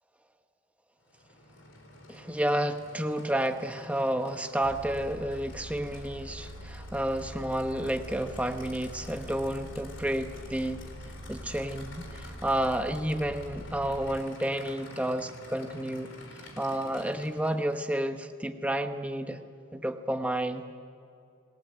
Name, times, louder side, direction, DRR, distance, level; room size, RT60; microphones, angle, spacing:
Aircraft / Idling, 1.0-18.0, left 2 dB, 55° left, 3.9 m, -49 dB
voice 1, 2.1-10.8 11.3-16.1 16.6-19.4 19.7-20.6, right 1 dB, 5° right, 7 dB, 1.0 m, -31 dB
sound 1, 4.6-14.2, right 1 dB, 75° right, 1.5 m, -44 dB
28.0 x 19.0 x 8.9 m, 2.4 s
head